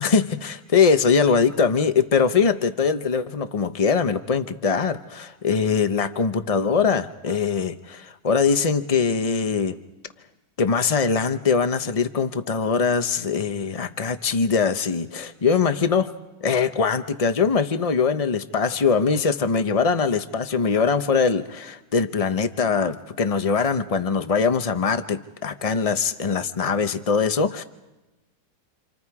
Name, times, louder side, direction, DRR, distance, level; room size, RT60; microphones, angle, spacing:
voice 1, 0.0-9.8 10.6-16.1 16.4-27.6, left 5 dB, 75° left, 9 dB, 0.3 m, -22 dB
28.5 x 28.0 x 4.8 m, 1.1 s
omnidirectional pair, 2.0 m